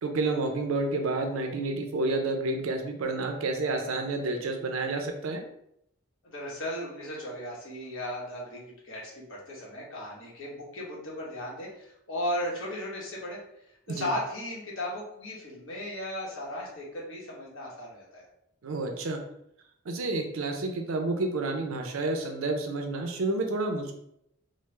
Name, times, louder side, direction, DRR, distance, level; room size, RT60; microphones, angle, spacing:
voice 1, 0.0-5.4 13.9-14.1 18.6-19.2 19.9-24.0, right 2 dB, 85° right, 4 dB, 0.5 m, -30 dB
voice 2, 6.2-13.4 13.9-18.3, left 1 dB, 75° left, -5 dB, 1.1 m, -36 dB
3.1 x 2.0 x 3.2 m, 0.77 s
head